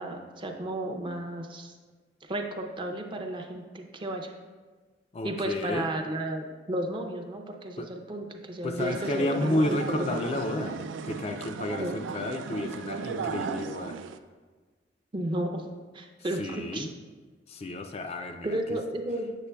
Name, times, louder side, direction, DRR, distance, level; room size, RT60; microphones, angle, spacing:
voice 1, 0.0-1.7 2.3-4.3 5.2-10.2 11.8-12.0 15.1-15.6 15.9-16.9 18.4-19.4, right 1 dB, 25° right, 3 dB, 0.5 m, -33 dB
voice 2, 5.1-5.9 7.8-7.9 8.6-14.0 16.4-16.9 17.5-18.8, left 2 dB, 35° left, 5 dB, 0.3 m, -31 dB
sound 1, 8.8-14.2, right 5 dB, 85° right, 0.3 m, -36 dB
8.1 x 6.6 x 2.2 m, 1.4 s
head